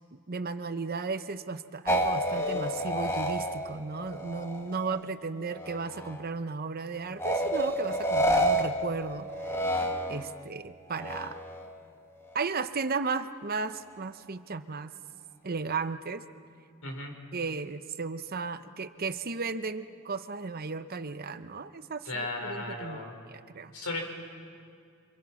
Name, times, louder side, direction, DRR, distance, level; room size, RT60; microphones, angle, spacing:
voice 1, 0.1-9.3 10.1-11.4 12.3-14.9 15.4-16.2 17.3-23.7, right 4 dB, 45° right, 11 dB, 0.8 m, -35 dB
sound 1, 1.9-5.1 5.4-6.2 7.2-10.4 10.9-11.7, equal, 10° left, 1.3 m, -30 dB
voice 2, 16.8-17.1 22.0-23.1 23.7-24.0, left 2 dB, 90° left, 3 dB, 4.2 m, -35 dB
27.0 x 25.5 x 5.9 m, 2.2 s
head